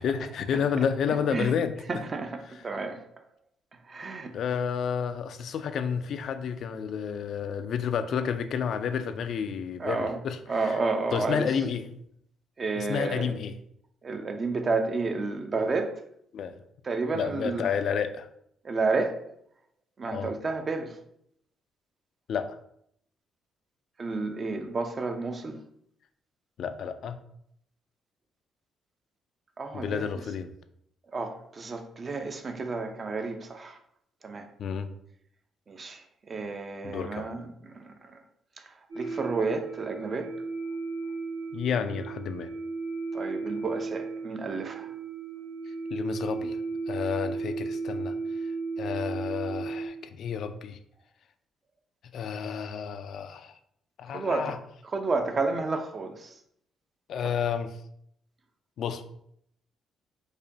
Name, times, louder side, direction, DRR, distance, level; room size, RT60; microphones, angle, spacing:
voice 1, 0.0-1.7 4.3-10.8 11.1-12.0 12.8-13.5 16.3-16.5 17.1-18.3 20.1-20.3 22.3-22.6 26.6-27.2 29.7-30.5 34.6-34.9 36.8-37.3 41.5-42.5 45.9-46.6 46.9-48.1 48.4-48.5 48.8-50.8 52.1-53.6 54.0-54.6 57.1-57.8 58.8-59.0, left 7 dB, 65° left, 0.3 m, -30 dB
voice 2, 1.9-3.0 3.8-4.3 9.8-10.2 10.5-11.5 12.6-13.4 14.0-16.0 16.8-17.7 18.6-19.2 20.0-21.0 24.0-25.6 29.6-30.1 31.1-33.8 34.2-34.5 35.7-38.2 38.6-40.4 43.1-44.9 54.1-54.6 54.9-56.4, right 3 dB, 40° right, 0.5 m, -31 dB
sound 1, 38.9-49.9, right 4 dB, 80° right, 1.5 m, -35 dB
4.8 x 2.2 x 2.7 m
cardioid pair, 90°, 0 cm